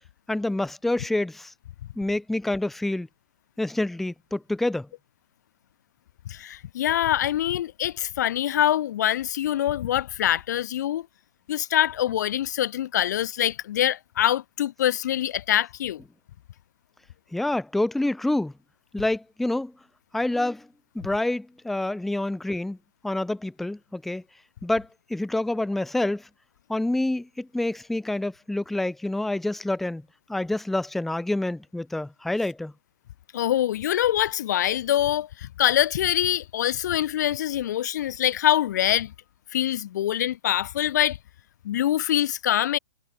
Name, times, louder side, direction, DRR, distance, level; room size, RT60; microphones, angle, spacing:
voice 1, 0.3-1.5 2.0-3.1 3.6-4.9 17.3-18.5 18.9-19.7 20.1-20.7 20.9-22.8 23.0-24.2 24.6-26.3 26.7-30.0 30.3-32.7, left 2 dB, ahead, 0.6 m, -27 dB
voice 2, 6.3-11.1 11.5-16.0 33.3-39.1 39.5-41.2 41.6-42.8, left 12 dB, 50° left, 0.4 m, -24 dB
hypercardioid pair, 150°, 12 cm